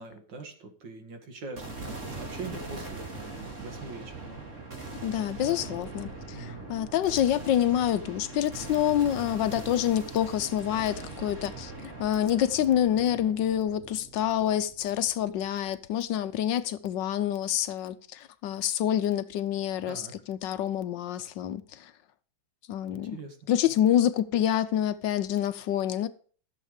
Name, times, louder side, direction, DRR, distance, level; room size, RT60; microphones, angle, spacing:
voice 1, 0.0-4.4 6.3-6.7 19.8-20.1 23.1-23.4, right 3 dB, 65° right, 2.5 m, -42 dB
sound 1, 1.6-15.9, right 3 dB, 40° right, 2.8 m, -41 dB
voice 2, 5.0-21.9 22.7-23.2 23.5-26.1, left 11 dB, 75° left, 1.3 m, -27 dB
14.5 x 7.3 x 5.0 m
omnidirectional pair, 2.1 m